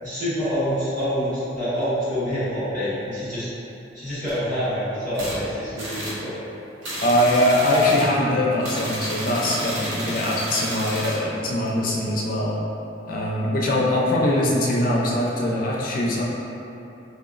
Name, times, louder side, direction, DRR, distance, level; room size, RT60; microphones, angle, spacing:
voice 1, 0.0-3.5 3.9-6.3, equal, 40° right, -13 dB, 1.5 m, -26 dB
sound 1, 5.1-5.4 5.8-6.2 6.8-8.1 8.6-11.2, equal, 80° right, 0.9 m, -31 dB
voice 2, 7.0-12.6 13.1-16.2, left 1 dB, 45° left, -4 dB, 0.4 m, -22 dB
4.2 x 2.9 x 2.4 m, 2.9 s
head